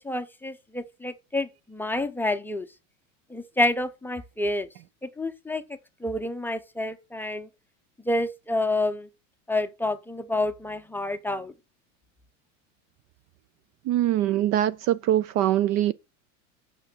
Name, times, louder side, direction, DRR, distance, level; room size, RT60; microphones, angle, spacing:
voice 1, 0.0-2.7 3.3-4.7 5.2-5.6 6.0-7.5 8.1-9.1 9.5-11.5, left 2 dB, 5° left, 0.6 m, -28 dB
voice 2, 13.9-15.9, right 12 dB, 45° right, 0.4 m, -23 dB
6.4 x 5.9 x 6.0 m
supercardioid pair, 125°, 38 cm